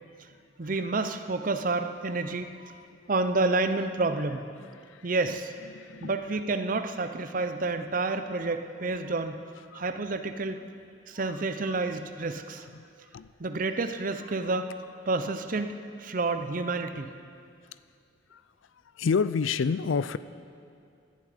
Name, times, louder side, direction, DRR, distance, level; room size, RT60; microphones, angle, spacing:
voice 1, 0.6-2.5 3.1-4.4 5.0-5.5 6.0-9.4 9.7-10.6 11.1-12.6 13.4-14.7 15.1-15.7 16.0-17.1, right 3 dB, 45° right, 8 dB, 0.6 m, -29 dB
voice 2, 4.8-5.3 5.7-6.2 7.5-7.6 9.7-9.9 11.1-11.3 11.6-11.8 12.7-12.9 13.1-13.3 18.3-18.4 18.9-20.2, left 5 dB, 90° left, 15 dB, 0.4 m, -30 dB
16.5 x 11.0 x 5.1 m, 2.3 s
head